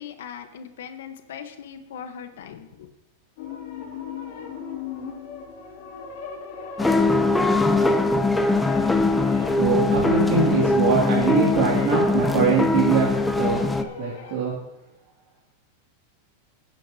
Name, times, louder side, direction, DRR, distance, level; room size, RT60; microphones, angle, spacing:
voice 1, 0.0-2.9, left 8 dB, 85° left, 8 dB, 1.1 m, -39 dB
sound 1, 3.4-14.4, left 5 dB, 65° left, 2.6 m, -39 dB
sound 2, 6.8-13.8, left 3 dB, 5° left, 0.6 m, -21 dB
voice 2, 9.6-13.1 13.3-13.6 14.0-14.5, right 6 dB, 55° right, -5 dB, 2.5 m, -22 dB
17.5 x 9.0 x 2.8 m, 0.96 s
supercardioid pair, 150°, 0 cm